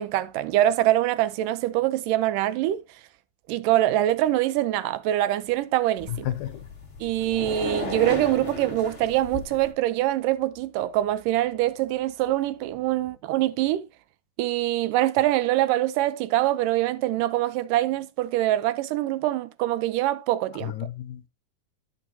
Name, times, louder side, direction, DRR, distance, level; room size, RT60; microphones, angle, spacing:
voice 1, 0.0-2.8 3.5-6.3 7.0-13.9 14.4-20.7, right 14 dB, 85° right, 2.3 m, -24 dB
sound 1, 6.0-9.7, left 2 dB, 25° left, 1.3 m, -35 dB
voice 2, 6.1-6.7 20.5-21.3, left 12 dB, 80° left, 2.3 m, -32 dB
12.0 x 5.6 x 2.8 m
omnidirectional pair, 3.7 m